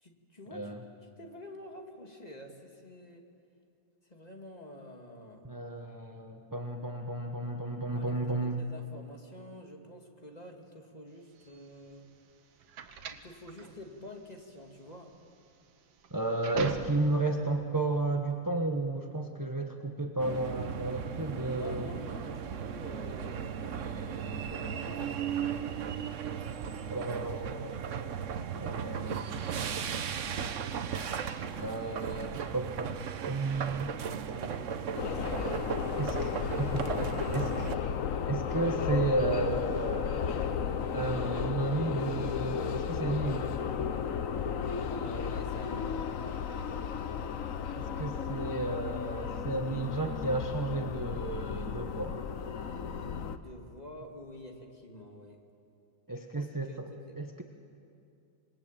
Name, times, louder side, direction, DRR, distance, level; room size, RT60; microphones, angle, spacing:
voice 1, 0.0-0.8 1.2-3.2 4.1-5.5 7.9-8.1 8.4-12.1 13.1-15.1 21.3-25.5 33.9-36.2 36.9-37.2 44.9-46.1 53.2-55.4 56.3-57.2, left 1 dB, 20° left, 2 dB, 2.2 m, -48 dB
voice 2, 0.5-0.8 5.4-8.7 16.1-21.9 26.9-27.8 28.6-29.3 31.6-33.0 33.3-33.9 36.0-36.9 37.3-37.7 38.3-40.3 40.9-43.6 47.8-52.2 56.1-56.9 57.2-57.4, right 2 dB, 15° right, 4 dB, 0.8 m, -33 dB
sound 1, 11.4-17.3, right 7 dB, 80° right, 2.0 m, -42 dB
sound 2, 20.2-37.8, right 7 dB, 50° right, 1.0 m, -36 dB
sound 3, 35.0-53.4, left 7 dB, 50° left, 1.1 m, -34 dB
27.0 x 21.0 x 9.0 m, 2.6 s
omnidirectional pair, 2.2 m